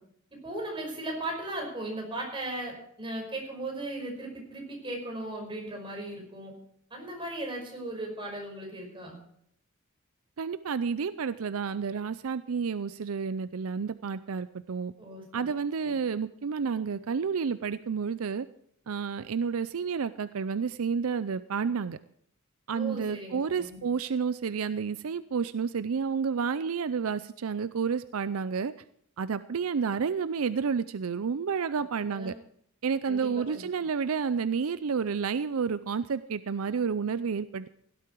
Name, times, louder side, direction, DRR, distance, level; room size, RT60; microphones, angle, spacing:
voice 1, 0.4-6.5 6.9-9.2 15.0-15.5 15.8-15.9 22.7-23.8 31.7-32.3 33.0-33.7, right 1 dB, 25° right, 0 dB, 5.4 m, -37 dB
voice 2, 10.4-14.9 15.3-18.5 18.9-22.0 22.7-28.7 29.2-32.3 32.8-37.7, right 6 dB, 75° right, 14 dB, 0.5 m, -30 dB
17.0 x 12.0 x 4.6 m, 0.69 s
head